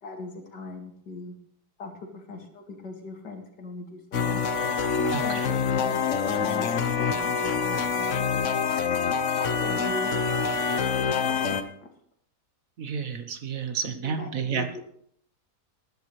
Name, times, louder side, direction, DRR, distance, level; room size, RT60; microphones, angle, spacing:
voice 1, 0.0-1.3 1.8-4.5 5.0-5.4 5.7-8.4 9.4-10.2 10.6-11.9 14.0-14.8, left 3 dB, 90° left, 2 dB, 2.8 m, -40 dB
sound 1, 4.1-11.6, left 6 dB, 55° left, 1.1 m, -26 dB
voice 2, 5.1-5.5 12.8-14.7, right 6 dB, 55° right, 8 dB, 1.4 m, -31 dB
19.5 x 11.0 x 3.2 m, 0.66 s
omnidirectional pair, 1.8 m